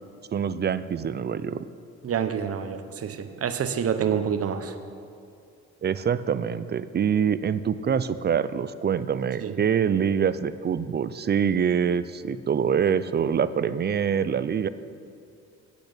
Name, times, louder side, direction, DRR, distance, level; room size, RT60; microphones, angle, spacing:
voice 1, 0.3-1.7 5.8-14.7, right 7 dB, 35° right, 14 dB, 0.5 m, -25 dB
voice 2, 2.0-4.7 9.4-9.5, right 7 dB, 50° right, 9 dB, 0.9 m, -27 dB
8.8 x 8.4 x 8.2 m, 2.5 s
cardioid pair, 90°, 30 cm